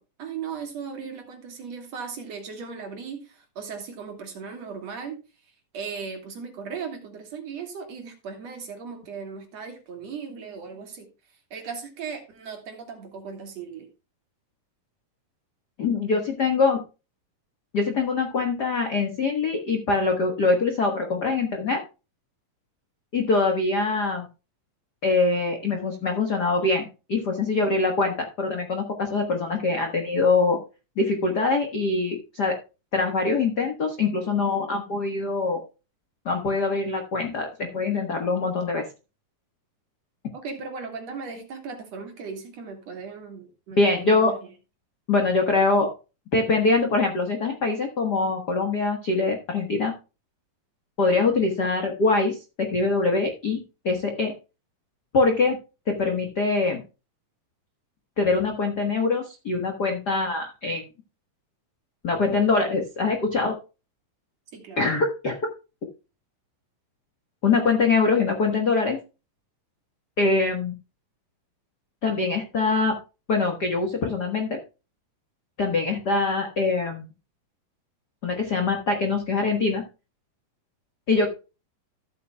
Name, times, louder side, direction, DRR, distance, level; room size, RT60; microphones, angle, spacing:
voice 1, 0.0-5.2 5.7-11.1 11.5-13.9 40.3-44.5 64.5-64.8, right 5 dB, 50° right, 4 dB, 2.6 m, -37 dB
voice 2, 15.8-16.8 17.7-21.8 23.1-24.3 25.0-30.6 31.0-32.6 32.9-35.6 36.2-38.8 43.8-44.3 45.1-45.9 46.3-49.9 51.0-54.3 55.1-55.6 55.9-56.8 58.2-60.8 62.0-63.5 64.8-65.4 67.4-69.0 70.2-70.8 72.0-73.0 73.3-74.6 75.6-77.0 78.2-79.8 81.1-81.3, left 3 dB, 75° left, 3 dB, 0.9 m, -23 dB
14.0 x 8.4 x 2.3 m, 0.30 s
omnidirectional pair, 4.2 m